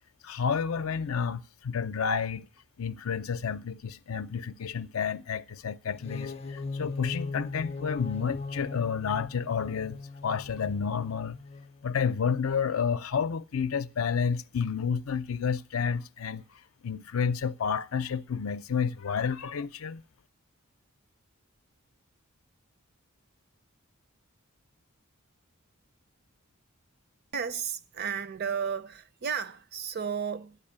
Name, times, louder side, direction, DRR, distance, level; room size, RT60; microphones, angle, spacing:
voice 1, 0.2-2.5 2.8-11.4 11.8-16.4 16.8-20.0, left 6 dB, 75° left, 0.5 m, -30 dB
Long Distant Foghorn, 5.9-11.8, left 3 dB, 30° left, 0.6 m, -39 dB
voice 2, 27.3-30.6, right 7 dB, 50° right, 0.7 m, -33 dB
12.5 x 8.8 x 8.6 m
head